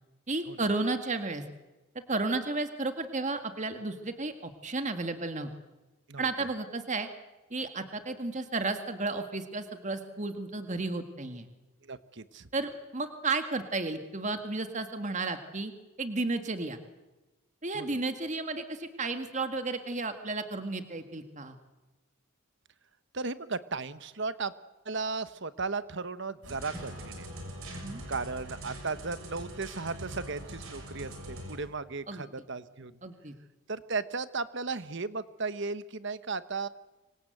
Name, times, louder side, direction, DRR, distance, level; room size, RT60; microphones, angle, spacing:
voice 1, 0.3-1.4 2.1-5.5 6.2-7.1 7.5-11.5 12.5-15.7 16.0-16.8 17.6-21.5 27.7-28.0 32.1-32.2 33.0-33.3, right 3 dB, 35° right, 7 dB, 1.8 m, -33 dB
voice 2, 11.8-12.5 17.7-18.0 23.1-24.5 24.8-27.3 28.1-32.9 33.7-36.7, right 4 dB, 55° right, 14 dB, 1.1 m, -35 dB
sound 1, 26.4-31.6, right 1 dB, 70° right, 6.6 m, -43 dB
Acoustic guitar / Strum, 26.7-30.3, equal, 5° right, 6.0 m, -54 dB
26.0 x 25.0 x 7.9 m, 1.1 s
head